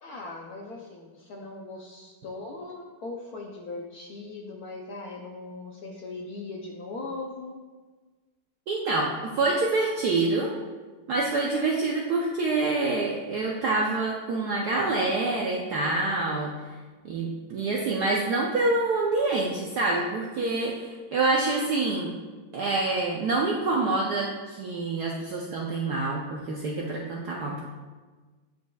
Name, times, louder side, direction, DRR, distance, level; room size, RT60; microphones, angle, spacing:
voice 1, 0.0-7.6, left 3 dB, 90° left, 0 dB, 0.8 m, -39 dB
voice 2, 8.7-10.5 11.1-16.5 17.0-22.1 22.5-27.6, right 3 dB, 70° right, -2 dB, 0.9 m, -26 dB
9.4 x 5.3 x 2.3 m, 1.3 s
omnidirectional pair, 2.4 m